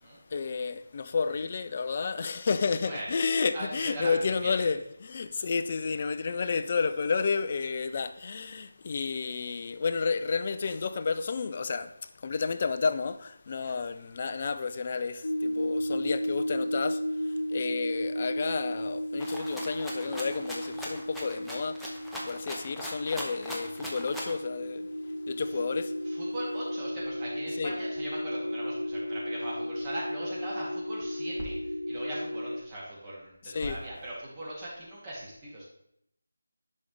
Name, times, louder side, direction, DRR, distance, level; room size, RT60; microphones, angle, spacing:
voice 1, 0.3-11.9 12.2-21.9 22.1-24.9 25.3-25.9 27.6-27.7 33.4-33.8, left 5 dB, 35° left, 0.5 m, -31 dB
voice 2, 3.5-4.2 4.4-4.7 13.6-13.7 25.4-25.6 26.0-35.6, right 1 dB, 20° right, 2.7 m, -39 dB
sound 1, 15.2-32.6, equal, 70° left, 1.4 m, -34 dB
Rattle (instrument), 19.2-24.4, equal, ahead, 0.7 m, -40 dB
10.5 x 5.3 x 3.3 m
figure-of-eight pair, 160°, 0 cm